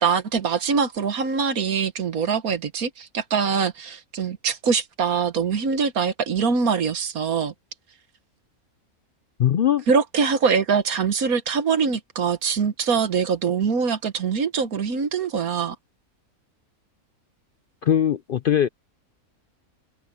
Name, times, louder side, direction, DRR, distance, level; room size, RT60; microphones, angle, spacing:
voice 1, 0.0-7.5 9.9-15.7, right 6 dB, 70° right, 1.7 m, -23 dB
voice 2, 9.4-9.8 17.8-18.7, left 10 dB, 70° left, 0.5 m, -20 dB
omnidirectional pair, 1.6 m